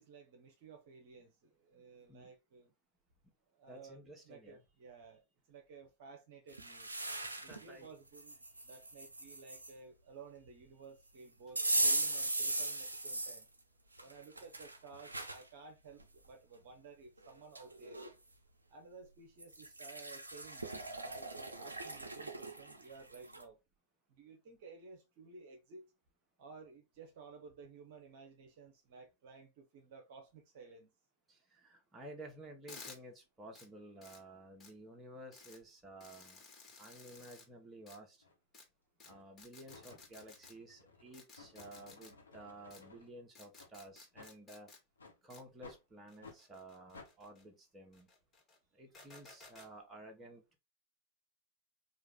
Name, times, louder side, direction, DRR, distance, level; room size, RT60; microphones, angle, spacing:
voice 1, 0.0-2.7 3.5-6.9 7.4-13.5 14.0-18.0 18.7-23.6 24.1-25.9 26.4-30.9, right 4 dB, 50° right, 0.9 m, -55 dB
voice 2, 3.7-4.6 7.5-7.9 31.3-36.4 36.8-38.2 39.0-44.7 45.2-48.1 48.7-50.6, right 1 dB, 15° right, 1.2 m, -53 dB
sound 1, 6.5-7.6 8.1-9.7 11.6-13.4 14.0-15.4 16.0-16.1 17.2-17.3 17.5-18.1 19.4-23.4, right 2 dB, 80° right, 0.6 m, -38 dB
sound 2, 32.7-33.0 33.5-33.7 34.0-34.2 34.6-34.7 35.3-35.6 36.0-37.4 37.9-38.0 38.5-38.6 39.0-39.1 39.4-40.5 41.1-42.1 42.7-42.8 43.3-44.8 45.3-45.4 46.1-47.4 47.9-48.6 48.9-49.7, left 4 dB, 25° left, 1.7 m, -56 dB
sound 3, 38.2-38.4 39.0-39.3 39.7-43.1 43.5-43.7 44.1-44.3 45.0-45.2 45.6-45.8 46.2-46.4 46.9-47.1, left 3 dB, 75° left, 1.2 m, -56 dB
4.7 x 2.5 x 3.5 m
figure-of-eight pair, 90°, 0 cm